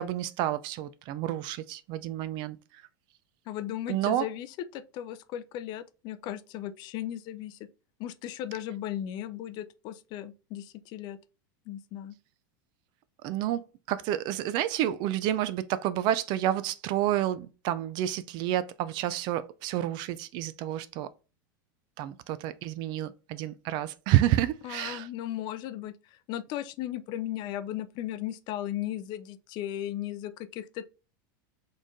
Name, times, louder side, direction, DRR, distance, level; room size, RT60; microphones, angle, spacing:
voice 1, 0.0-2.6 3.9-4.3 13.2-21.1 22.0-25.1, right 12 dB, 45° right, 0.4 m, -29 dB
voice 2, 3.5-4.5 4.7-7.6 8.0-11.2 11.7-12.2 24.6-30.9, left 12 dB, 40° left, 0.4 m, -36 dB
4.3 x 3.2 x 3.5 m
supercardioid pair, 145°, 11 cm